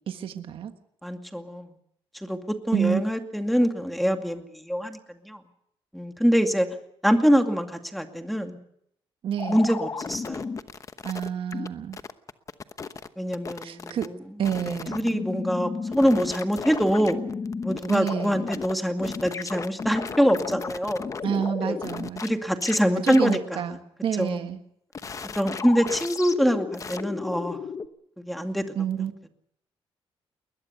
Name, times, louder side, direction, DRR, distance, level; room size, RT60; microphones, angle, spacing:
voice 1, 0.1-0.7 2.7-3.0 9.2-9.6 11.0-12.0 13.6-14.1 14.4-15.1 17.9-18.5 21.2-22.2 23.0-24.6 28.7-29.1, right 8 dB, 65° right, 8 dB, 1.5 m, -29 dB
voice 2, 1.0-1.7 2.2-5.0 5.2-5.4 5.9-6.7 7.0-8.6 9.5-10.5 13.2-14.0 14.9-17.2 17.6-21.1 21.6-21.9 22.2-23.6 24.2-24.5 25.4-27.6 28.2-28.7, equal, ahead, 5 dB, 2.3 m, -24 dB
sound 1, 9.4-11.7 11.9-13.1 13.3-14.1 14.4-18.7 19.0-22.3 22.6-22.8 23.1-23.4 24.9-27.9, left 5 dB, 35° left, 1.0 m, -34 dB
21.0 x 20.5 x 6.9 m, 0.73 s
cardioid pair, 120°, 10 cm